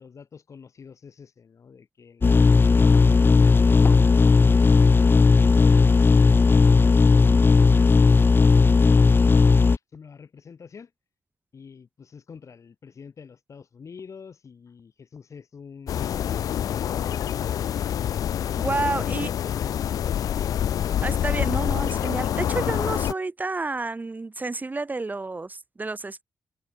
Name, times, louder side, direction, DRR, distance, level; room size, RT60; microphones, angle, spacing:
voice 1, 0.0-7.4 9.9-10.9 11.5-16.3 18.9-20.0, left 6 dB, 60° left, 5.7 m, -45 dB
sound 1, 2.2-9.8, left 4 dB, 35° left, 0.7 m, -16 dB
sound 2, 15.9-23.1, left 10 dB, 85° left, 1.3 m, -26 dB
voice 2, 18.6-19.3 21.0-26.2, right 3 dB, 30° right, 0.9 m, -30 dB
cardioid pair, 65°, 6 cm